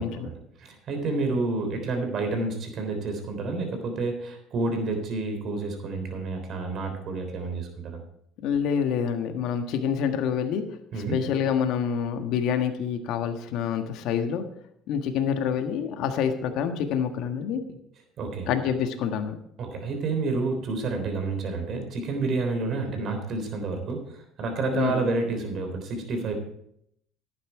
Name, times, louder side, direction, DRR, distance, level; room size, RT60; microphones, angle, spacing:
voice 1, 0.0-8.0 10.9-11.2 18.2-18.5 19.6-26.3, right 3 dB, 55° right, 5 dB, 3.6 m, -29 dB
voice 2, 8.4-14.4 14.9-17.6 18.5-19.3 24.7-25.1, left 7 dB, 65° left, 6 dB, 1.4 m, -27 dB
11.5 x 9.4 x 4.7 m, 0.73 s
supercardioid pair, 80°, 0 cm